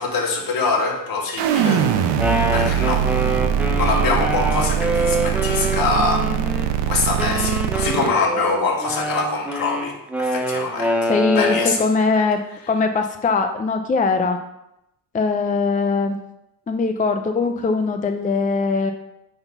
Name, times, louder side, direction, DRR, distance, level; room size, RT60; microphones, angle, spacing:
voice 1, 0.0-1.9 2.5-3.1 3.7-6.6 6.9-11.8, left 4 dB, 55° left, 0 dB, 2.3 m, -24 dB
sound 1, 1.4-8.1, right 9 dB, 80° right, 0.9 m, -22 dB
Wind instrument woodwind instrument, 2.0-6.7 7.2-11.9, right 1 dB, 5° right, 0.9 m, -25 dB
voice 2, 11.1-12.4 12.7-14.4 15.1-16.2 16.7-18.9, left 4 dB, 20° left, 6 dB, 0.5 m, -21 dB
9.4 x 4.0 x 5.9 m, 0.86 s
cardioid pair, 120°, 42 cm